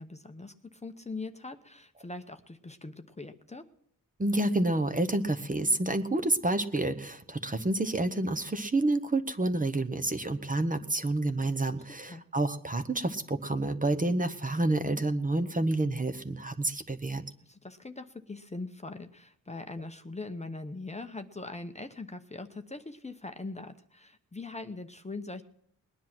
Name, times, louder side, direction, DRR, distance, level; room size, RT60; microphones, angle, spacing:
voice 1, 0.0-3.6 11.9-12.2 17.4-25.4, left 3 dB, 20° left, 7 dB, 0.8 m, -41 dB
voice 2, 4.2-17.2, right 2 dB, 25° right, 10 dB, 0.9 m, -29 dB
20.0 x 10.0 x 6.0 m, 0.67 s
wide cardioid pair, 100°, 34 cm